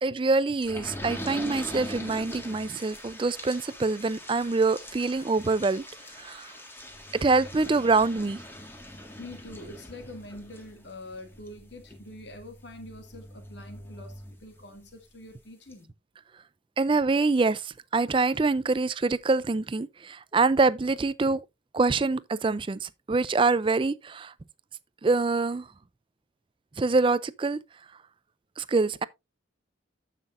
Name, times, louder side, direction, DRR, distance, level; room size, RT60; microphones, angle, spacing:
voice 1, 0.0-5.8 6.2-6.5 7.1-8.4 16.8-21.4 21.7-24.3 25.0-25.7 26.8-27.6 28.6-29.0, right 3 dB, 25° right, 0.4 m, -25 dB
sound 1, 0.6-14.9 15.3-15.4 15.7-15.8, left 1 dB, 10° left, 1.7 m, -42 dB
voice 2, 8.8-16.0, left 1 dB, 60° left, 2.1 m, -45 dB
14.0 x 5.9 x 2.5 m
head